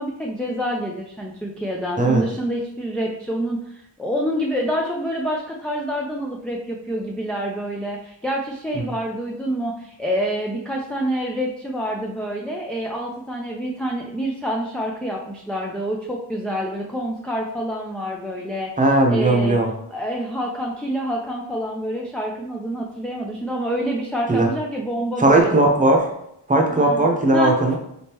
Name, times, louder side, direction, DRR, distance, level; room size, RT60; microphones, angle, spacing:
voice 1, 0.0-18.7 19.1-19.6 19.9-25.6 26.7-27.0 27.3-27.7, equal, ahead, -1 dB, 0.3 m, -27 dB
voice 2, 18.8-19.7 24.3-24.5 25.2-26.1 26.5-27.7, right 2 dB, 15° right, 0 dB, 0.8 m, -17 dB
4.1 x 3.6 x 2.9 m, 0.78 s
cardioid pair, 100°, 46 cm